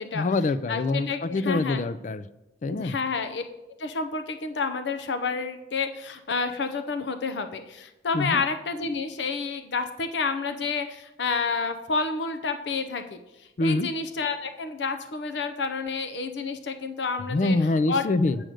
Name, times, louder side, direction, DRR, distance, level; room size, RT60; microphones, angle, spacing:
voice 1, 0.1-2.3 2.6-2.9 8.1-8.4 13.6-13.9 17.3-18.4, left 2 dB, 45° left, 13 dB, 0.4 m, -25 dB
voice 2, 0.7-1.8 2.7-3.4 3.8-17.6 17.9-18.0, left 4 dB, 80° left, 8 dB, 0.6 m, -29 dB
7.7 x 7.6 x 5.1 m, 0.97 s
head